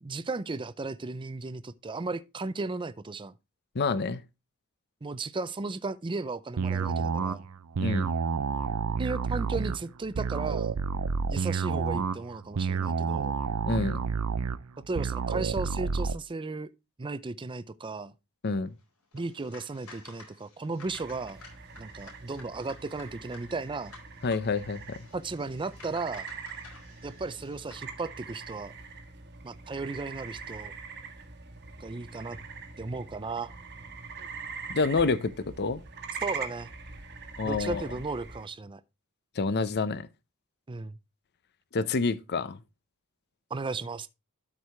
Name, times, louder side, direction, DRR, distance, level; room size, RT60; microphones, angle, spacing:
voice 1, 0.0-3.3 5.0-7.4 9.0-10.7 11.3-13.4 14.9-16.7 17.0-18.1 19.1-21.4 21.8-23.9 25.1-26.3 27.0-28.7 29.4-30.7 31.8-32.4 32.8-33.5 36.2-36.7 37.4-38.8 40.7-41.0 43.5-44.1, right 3 dB, 25° right, 0.5 m, -35 dB
voice 2, 3.7-4.2 7.8-8.1 13.6-14.0 18.4-18.7 24.2-25.0 34.7-35.8 37.4-37.8 39.4-40.1 41.7-42.6, left 4 dB, 50° left, 0.6 m, -28 dB
sound 1, 6.6-16.2, right 5 dB, 75° right, 0.5 m, -29 dB
sound 2, 19.1-27.9, left 3 dB, 85° left, 4.0 m, -52 dB
sound 3, 20.8-38.5, right 5 dB, 50° right, 1.4 m, -43 dB
12.5 x 4.8 x 3.4 m
head